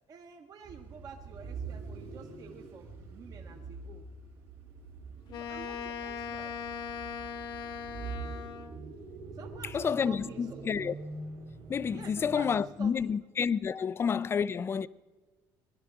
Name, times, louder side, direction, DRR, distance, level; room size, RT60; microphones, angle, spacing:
voice 1, 0.1-4.1 5.3-6.7 9.3-10.6 11.9-13.2 13.8-13.9 14.2-14.3, right 6 dB, 45° right, 1.1 m, -50 dB
sound 1, 0.6-12.8, right 4 dB, 85° right, 2.9 m, -44 dB
Wind instrument woodwind instrument, 5.3-8.8, left 6 dB, 55° left, 1.1 m, -39 dB
voice 2, 9.7-10.9 11.7-14.9, left 6 dB, 25° left, 0.4 m, -29 dB
20.0 x 11.0 x 5.9 m
cardioid pair, 115°, 9 cm